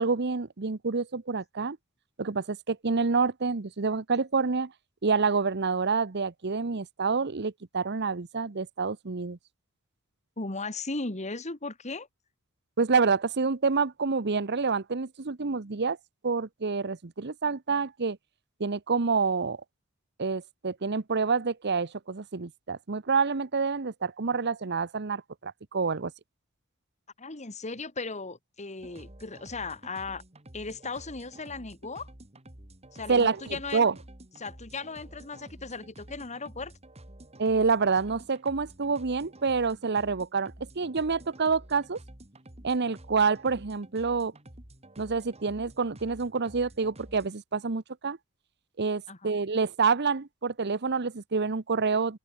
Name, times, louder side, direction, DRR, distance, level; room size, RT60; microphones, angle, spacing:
voice 1, 0.0-1.8 2.2-4.7 5.0-9.4 12.8-16.0 16.2-18.2 18.6-19.6 20.2-26.1 33.1-33.9 37.4-42.0 42.6-44.3 45.0-48.2 48.8-52.2, right 4 dB, 50° right, 0.9 m, -27 dB
voice 2, 10.4-12.1 27.2-30.2 30.5-32.1 32.9-33.8 34.4-36.7 49.1-49.3, left 3 dB, 35° left, 2.1 m, -37 dB
sound 1, 28.8-47.3, right 1 dB, 30° right, 2.9 m, -50 dB
open air
head